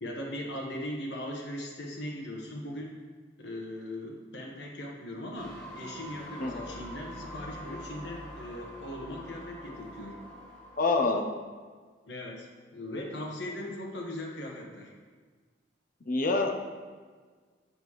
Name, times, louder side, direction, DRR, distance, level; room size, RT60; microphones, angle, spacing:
voice 1, 0.0-3.0 3.4-10.2 12.1-14.9, left 1 dB, 80° left, -1 dB, 1.3 m, -39 dB
sound 1, 5.3-11.0, equal, 5° left, 1.8 m, -45 dB
voice 2, 6.4-6.7 10.8-11.2 16.1-16.5, left 3 dB, 55° left, 3 dB, 0.8 m, -26 dB
7.8 x 6.9 x 3.2 m, 1.5 s
head